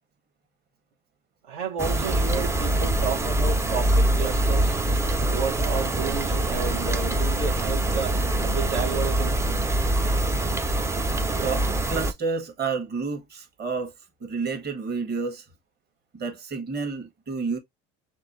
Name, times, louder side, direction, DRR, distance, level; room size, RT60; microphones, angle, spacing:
voice 1, 1.5-4.8 5.2-9.4, right 5 dB, 75° right, 1.2 m, -32 dB
sound 1, 1.8-12.1, right 1 dB, 10° right, 0.3 m, -24 dB
voice 2, 11.4-13.9 14.2-15.5 16.1-17.6, right 4 dB, 30° right, 1.3 m, -30 dB
5.9 x 2.4 x 2.6 m
supercardioid pair, 95°, 30 cm